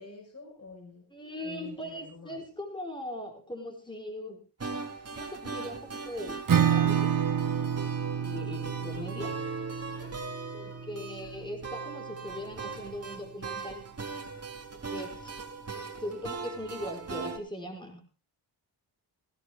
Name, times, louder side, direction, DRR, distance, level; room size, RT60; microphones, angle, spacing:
voice 1, 0.0-1.0 1.4-2.4 8.8-9.5, left 4 dB, 40° left, -3 dB, 5.7 m, -48 dB
voice 2, 1.1-4.4 5.1-7.1 8.2-9.3 9.9-10.0 10.5-13.8 14.7-15.3 15.7-18.2, left 1 dB, 10° left, 3 dB, 5.1 m, -40 dB
sound 1, 4.6-17.4, right 4 dB, 35° right, 3.2 m, -40 dB
Acoustic guitar / Strum, 6.5-11.9, right 8 dB, 50° right, 1.4 m, -29 dB
18.5 x 17.5 x 2.3 m, 0.33 s
wide cardioid pair, 130°, 42 cm